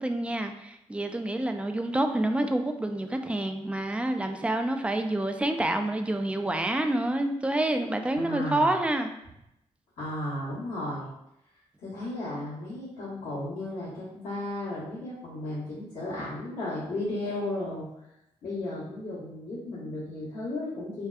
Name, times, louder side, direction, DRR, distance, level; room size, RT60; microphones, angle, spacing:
voice 1, 0.0-9.1, right 1 dB, 10° right, 6 dB, 0.3 m, -28 dB
voice 2, 8.1-8.8 10.0-11.1 11.8-17.9 18.4-21.1, left 1 dB, 75° left, -13 dB, 1.1 m, -34 dB
2.6 x 2.2 x 2.4 m, 0.84 s
supercardioid pair, 50°, 13 cm